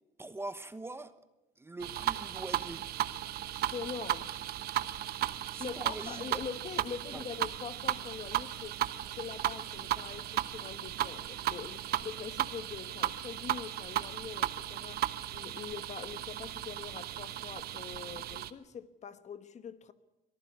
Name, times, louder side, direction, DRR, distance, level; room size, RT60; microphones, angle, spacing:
voice 1, 0.2-1.1 1.6-2.9 5.5-6.4 7.1-7.2, right 2 dB, 15° right, 1.1 m, -43 dB
sound 1, 1.8-18.5, right 13 dB, 65° right, 1.0 m, -35 dB
voice 2, 3.5-4.3 5.6-8.8 9.1-15.1 15.3-19.9, left 7 dB, 45° left, 1.2 m, -43 dB
23.0 x 14.5 x 8.4 m
cardioid pair, 110°, 17 cm